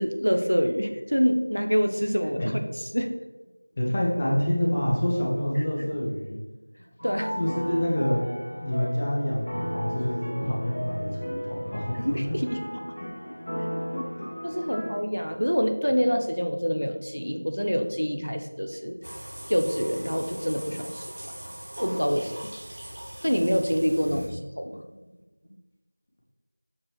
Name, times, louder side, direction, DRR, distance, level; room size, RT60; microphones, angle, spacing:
voice 1, 0.0-2.6 2.9-3.1 5.8-5.9 7.0-7.4 12.0-12.8 14.4-19.0 19.5-21.1 21.8-22.3 23.2-24.8, equal, 90° left, 6 dB, 0.8 m, -26 dB
voice 2, 3.8-6.4 7.4-8.3 8.6-12.3 14.2-14.3 24.1-24.4, equal, 15° left, -4 dB, 0.5 m, -27 dB
sound 1, 7.0-14.9, equal, 65° left, 2.1 m, -35 dB
sound 2, 19.0-24.6, right 1 dB, 40° right, 0.5 m, -41 dB
7.1 x 4.7 x 3.1 m, 1.2 s
figure-of-eight pair, 175°, 0 cm